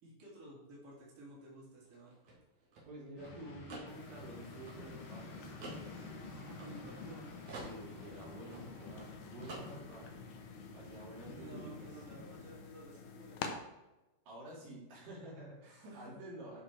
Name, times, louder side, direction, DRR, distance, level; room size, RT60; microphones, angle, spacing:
voice 1, 0.0-2.1 6.4-7.3 11.2-13.5 15.6-16.2, right 1 dB, 30° right, -6 dB, 3.1 m, -53 dB
sound 1, 1.8-7.1 7.5-9.1 9.4-10.1, right 2 dB, 55° right, 3.4 m, -51 dB
voice 2, 2.9-5.5 7.5-10.3 10.7-11.9 14.3-16.6, right 1 dB, 80° right, -6 dB, 4.6 m, -50 dB
sound 2, 3.2-12.6, left 3 dB, 50° left, 2.6 m, -51 dB
sound 3, 3.9-13.5, left 6 dB, 70° left, 2.4 m, -50 dB
12.0 x 5.1 x 4.6 m, 1.0 s
omnidirectional pair, 3.8 m